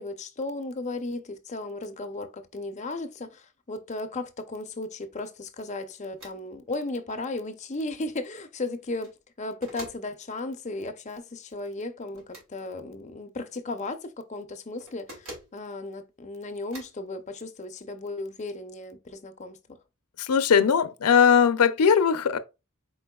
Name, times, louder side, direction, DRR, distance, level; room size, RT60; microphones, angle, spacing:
voice 1, 0.0-19.6, left 2 dB, 30° left, 0.6 m, -35 dB
sound 1, 6.1-6.4 6.7-6.8 8.8-9.2 9.6-10.1 12.2-12.5 14.8-15.5 16.7-17.0, right 1 dB, 65° right, 2.4 m, -44 dB
voice 2, 20.2-22.4, left 7 dB, 85° left, 0.5 m, -20 dB
4.5 x 4.3 x 2.3 m
head